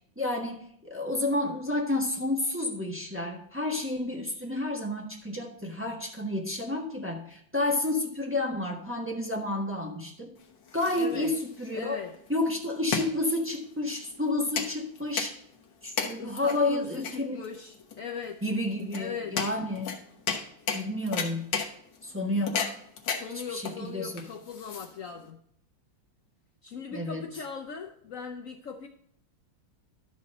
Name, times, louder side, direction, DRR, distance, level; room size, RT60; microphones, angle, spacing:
voice 1, 0.2-10.3 10.7-12.0 12.3-15.3 15.8-17.4 18.4-20.0 20.7-21.4 22.0-22.7 23.5-24.1 26.9-27.2, left 2 dB, 10° right, -1 dB, 1.1 m, -30 dB
sound 1, 10.4-25.3, left 6 dB, 65° left, 1.8 m, -35 dB
voice 2, 11.0-11.3 11.7-12.1 16.1-18.4 18.9-19.4 23.1-25.4 26.6-28.9, left 6 dB, 80° left, 3 dB, 0.7 m, -39 dB
12.0 x 4.2 x 6.5 m, 0.69 s
omnidirectional pair, 2.2 m